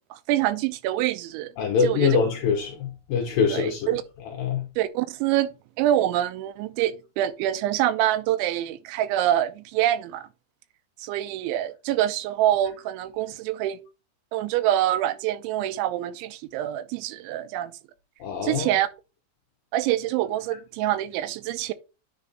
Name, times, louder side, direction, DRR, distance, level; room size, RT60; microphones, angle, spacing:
voice 1, 0.1-1.5 1.8-2.2 3.5-4.0 4.8-5.5 5.8-10.3 11.0-13.8 14.3-17.7 18.4-18.9 19.7-21.7, right 13 dB, 85° right, 3.0 m, -25 dB
voice 2, 1.6-3.9 4.4-4.6 18.2-18.7, left 6 dB, 70° left, 2.2 m, -24 dB
10.0 x 3.5 x 3.9 m
omnidirectional pair, 5.3 m